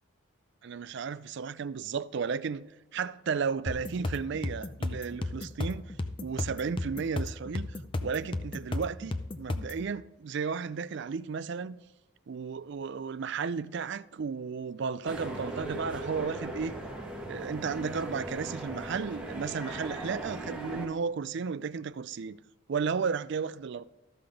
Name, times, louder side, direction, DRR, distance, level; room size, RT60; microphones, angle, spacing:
voice 1, 0.6-2.6 2.9-5.9 6.2-7.7 8.0-11.8 12.3-16.8 17.3-22.4 22.7-23.8, right 5 dB, 55° right, 0.4 m, -34 dB
sound 1, 3.7-9.8, left 2 dB, 25° left, 0.5 m, -34 dB
sound 2, 15.0-20.9, right 1 dB, 5° right, 1.8 m, -38 dB
13.5 x 5.8 x 5.0 m
head